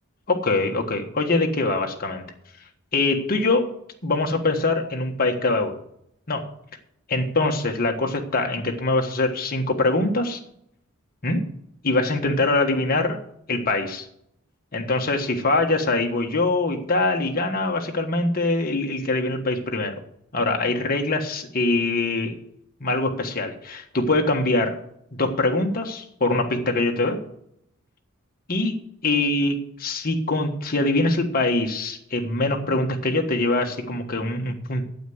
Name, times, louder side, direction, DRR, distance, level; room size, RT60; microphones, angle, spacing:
voice 1, 0.3-2.2 2.9-3.7 4.0-5.8 6.3-6.5 7.1-10.4 11.2-11.4 11.8-13.2 13.5-14.1 14.7-20.0 20.3-22.4 22.8-24.8 25.2-27.2 28.5-28.7 29.0-34.8, left 2 dB, 40° left, 2 dB, 1.4 m, -23 dB
9.2 x 8.0 x 7.8 m, 0.73 s
head